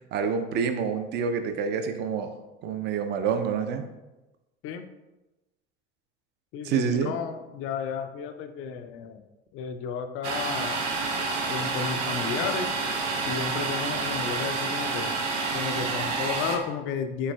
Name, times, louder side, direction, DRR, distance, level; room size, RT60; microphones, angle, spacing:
voice 1, 0.1-2.3 2.6-3.8 6.6-7.1, right 6 dB, 30° right, 7 dB, 0.4 m, -27 dB
voice 2, 6.5-9.2 9.5-10.9 11.5-12.7 13.3-15.2 15.5-17.3, left 6 dB, 40° left, 8 dB, 0.4 m, -33 dB
Domestic sounds home sounds, 10.2-16.6, right 3 dB, 80° right, 0.6 m, -29 dB
4.4 x 3.8 x 2.2 m, 1.0 s
figure-of-eight pair, 70°, 35 cm